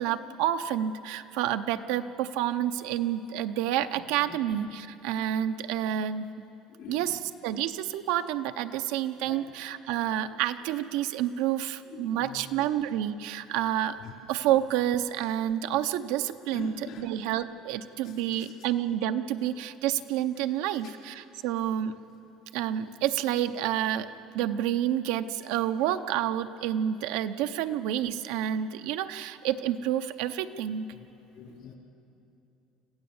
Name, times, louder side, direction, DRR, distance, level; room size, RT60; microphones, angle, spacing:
voice 1, 0.0-6.3 6.9-14.0 14.3-22.0 22.5-24.1 24.3-30.9, right 11 dB, 85° right, 9 dB, 0.7 m, -29 dB
voice 2, 6.8-7.1 9.3-9.4 11.9-12.4 14.0-14.1 16.5-17.0 20.8-20.9 30.9-31.0 31.3-31.8, left 7 dB, 65° left, -1 dB, 4.3 m, -43 dB
26.0 x 15.0 x 7.1 m, 2.8 s
cardioid pair, 130°, 0 cm